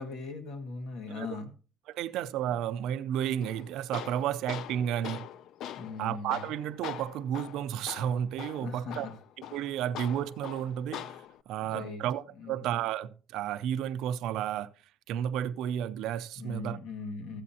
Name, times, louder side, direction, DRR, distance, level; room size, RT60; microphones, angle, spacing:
voice 1, 0.0-1.5 2.5-2.6 5.8-6.5 8.6-9.1 11.6-12.0 12.4-12.6 16.4-17.4, left 3 dB, 80° left, 1.6 m, -39 dB
voice 2, 1.9-5.3 6.0-9.1 9.5-11.1 11.5-14.7 15.1-16.8, right 10 dB, 75° right, 0.5 m, -32 dB
Tools, 3.4-11.4, left 11 dB, 60° left, 0.4 m, -43 dB
13.5 x 8.4 x 2.8 m
cardioid pair, 160°, 0 cm